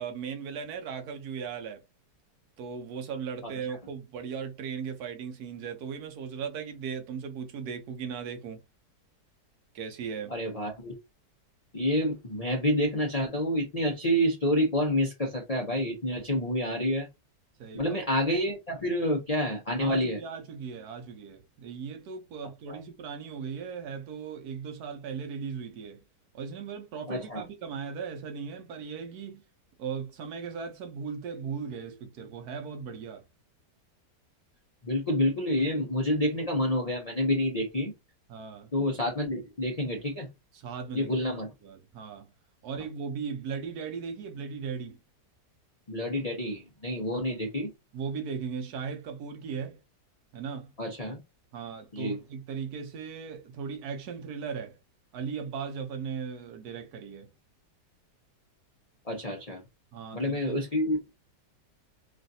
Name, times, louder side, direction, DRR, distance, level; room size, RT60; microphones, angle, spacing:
voice 1, 0.0-1.8 2.6-8.6 9.7-10.3 17.6-18.0 19.8-26.0 26.3-29.4 29.8-33.2 38.3-38.7 40.5-41.1 41.6-42.3 42.6-45.0 47.9-49.8 50.3-50.7 51.5-54.8 55.1-57.3 59.9-60.6, right 6 dB, 70° right, 1.1 m, -37 dB
voice 2, 10.3-10.9 11.7-17.1 17.7-20.2 22.7-22.8 27.1-27.4 34.8-37.9 38.7-40.3 40.9-41.5 45.9-47.7 50.8-51.2 51.9-52.2 59.1-59.6 60.1-61.1, left 1 dB, 60° left, 0.3 m, -28 dB
3.1 x 2.5 x 2.6 m
omnidirectional pair, 1.9 m